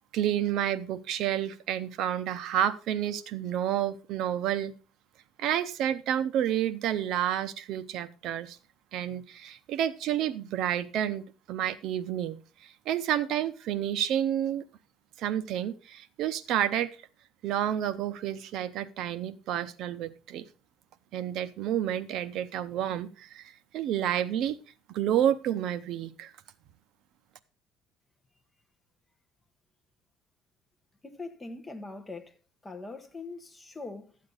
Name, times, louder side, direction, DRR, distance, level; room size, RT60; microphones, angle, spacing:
voice 1, 0.1-4.7 5.4-8.6 8.9-14.6 15.2-16.9 17.4-20.4 21.1-24.6 24.9-26.3, right 11 dB, 55° right, 0.7 m, -30 dB
voice 2, 31.0-32.4 32.6-34.2, left 3 dB, 10° left, 1.1 m, -42 dB
13.0 x 8.4 x 3.9 m
cardioid pair, 175°, 0 cm